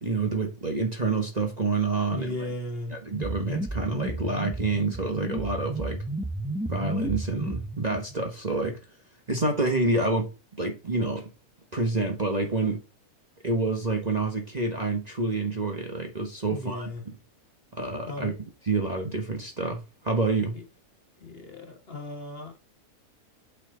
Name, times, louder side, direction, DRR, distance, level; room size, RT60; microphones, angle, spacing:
voice 1, 0.0-2.5 2.9-6.0 6.6-8.8 9.3-10.3 10.6-11.3 11.7-12.8 13.4-17.2 17.7-18.3 18.7-20.5, right 3 dB, 30° right, 1.2 m, -28 dB
voice 2, 2.1-3.0 16.4-17.0 18.0-18.3 20.5-20.6 21.2-22.6, left 2 dB, 40° left, 1.7 m, -36 dB
sound 1, 3.1-8.1, right 2 dB, 5° right, 0.5 m, -32 dB
8.4 x 5.9 x 3.8 m
omnidirectional pair, 1.6 m